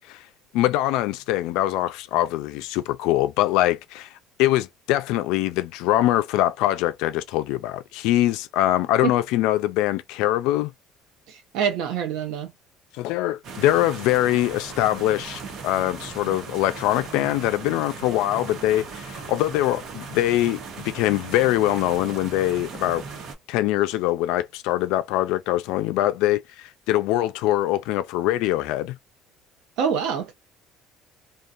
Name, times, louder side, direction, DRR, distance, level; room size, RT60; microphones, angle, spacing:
voice 1, 0.5-4.1 4.4-10.7 13.0-23.0 23.5-29.0, left 14 dB, 85° left, 0.4 m, -23 dB
voice 2, 11.3-12.5 29.8-30.3, right 7 dB, 80° right, 0.6 m, -26 dB
sound 1, 13.4-23.3, right 5 dB, 55° right, 0.9 m, -38 dB
2.7 x 2.2 x 2.4 m
cardioid pair, 135°, 0 cm